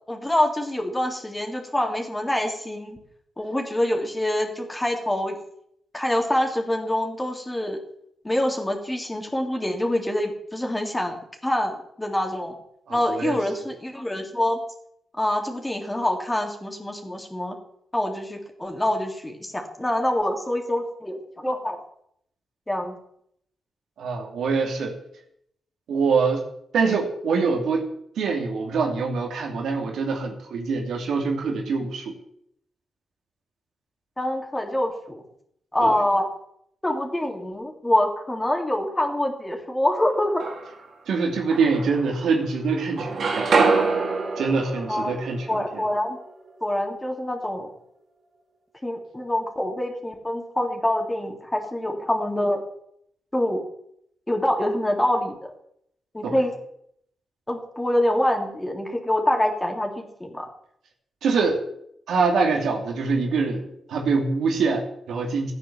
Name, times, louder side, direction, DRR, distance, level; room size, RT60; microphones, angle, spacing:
voice 1, 0.1-3.0 3.4-5.4 5.9-7.8 8.2-12.5 12.9-14.6 15.2-17.5 17.9-21.8 22.7-22.9 31.7-31.9 34.2-35.2 35.7-36.3 36.8-40.4 44.9-45.1 45.5-46.2 46.6-47.7 48.8-52.6 53.3-53.6 54.3-55.5 56.1-56.5 57.5-60.5, left 1 dB, 15° left, 2 dB, 3.3 m, -25 dB
voice 2, 12.9-13.4 24.0-25.0 25.9-26.5 26.7-27.9 28.2-32.1 35.8-36.0 41.1-43.5 44.4-45.8 56.2-56.4 61.2-61.6 62.1-63.6 63.9-65.5, right 4 dB, 80° right, 2 dB, 2.8 m, -24 dB
sound 1, 40.1-40.9 41.5-42.5 42.8-46.7, right 4 dB, 65° right, 3.2 m, -26 dB
14.5 x 9.5 x 7.3 m, 0.72 s
cardioid pair, 80°, 0 cm